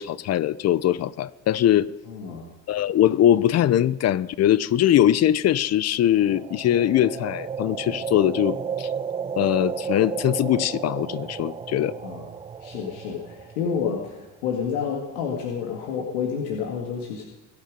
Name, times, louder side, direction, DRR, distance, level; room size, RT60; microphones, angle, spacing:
voice 1, 0.0-1.9 2.7-8.9 9.4-11.9, left 11 dB, 45° left, 0.7 m, -21 dB
voice 2, 2.1-2.4 12.0-12.3 12.6-17.3, left 6 dB, 90° left, 2.0 m, -29 dB
sound 1, 6.1-14.1, right 6 dB, 15° right, 0.4 m, -33 dB
21.5 x 8.6 x 5.2 m
supercardioid pair, 95°, 36 cm